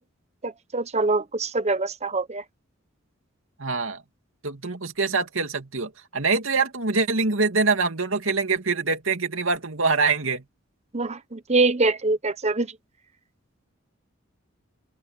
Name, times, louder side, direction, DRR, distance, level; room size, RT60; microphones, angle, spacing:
voice 1, 0.4-2.4 10.9-12.7, right 3 dB, 35° right, 1.1 m, -24 dB
voice 2, 3.6-4.0 4.4-10.4, right 4 dB, 80° right, 2.5 m, -24 dB
open air
head